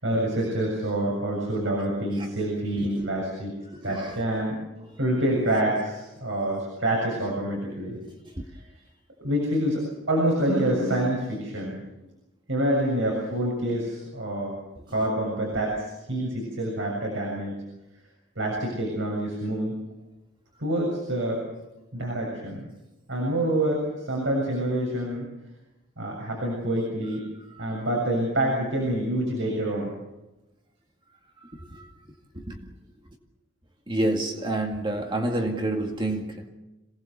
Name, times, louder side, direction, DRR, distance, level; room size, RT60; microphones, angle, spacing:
voice 1, 0.0-3.5 3.8-4.6 5.0-8.0 9.2-9.8 10.1-11.8 12.5-14.5 14.9-17.5 18.4-19.8 20.6-21.4 21.9-22.6 23.1-25.3 26.0-27.2 27.6-29.9, right 1 dB, 65° right, 7.1 m, -27 dB
voice 2, 2.8-3.1 3.6-4.2 4.8-5.0 8.2-8.5 15.0-15.1 27.5-27.9 31.4-31.9 32.3-32.7 33.0-33.2 33.9-36.5, right 1 dB, 25° right, 2.1 m, -30 dB
27.0 x 19.0 x 7.1 m
head